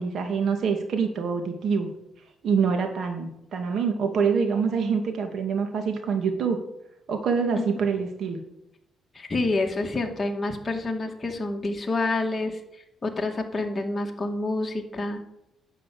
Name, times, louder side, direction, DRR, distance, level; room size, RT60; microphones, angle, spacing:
voice 1, 0.0-1.9 2.4-6.6 7.1-8.4, right 5 dB, 65° right, 5 dB, 2.5 m, -25 dB
voice 2, 9.1-12.6 13.0-15.2, left 2 dB, 25° left, 2 dB, 2.3 m, -28 dB
10.5 x 6.2 x 8.8 m, 0.83 s
cardioid pair, 90°, 0 cm